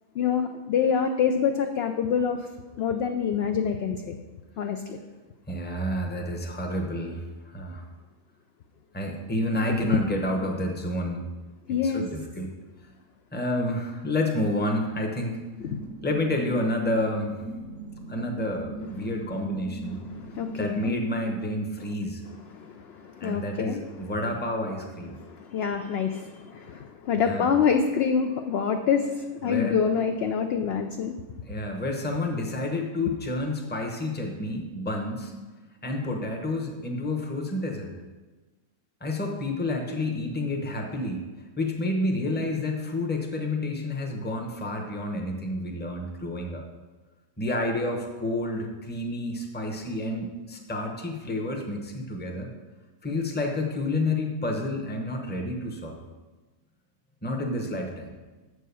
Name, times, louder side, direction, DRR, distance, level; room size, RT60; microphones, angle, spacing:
voice 1, 0.2-2.5 2.8-4.2 4.6-5.0 9.8-9.9 11.7-12.0 15.7-15.8 19.0-19.1 20.1-20.9 22.5-23.8 25.2-31.2, left 7 dB, 70° left, 6 dB, 0.6 m, -26 dB
voice 2, 5.5-7.8 8.9-11.2 11.8-12.5 13.3-15.4 16.0-17.4 18.1-20.0 20.6-22.2 23.2-25.2 27.1-27.5 29.4-29.8 31.4-35.3 35.8-37.9 39.0-41.2 41.6-46.6 47.4-52.5 53.0-56.0 57.2-58.1, left 1 dB, 10° left, 2 dB, 0.7 m, -29 dB
sound 1, 15.6-20.8, right 1 dB, 65° right, 1.0 m, -40 dB
7.3 x 4.7 x 6.9 m, 1.2 s
omnidirectional pair, 1.5 m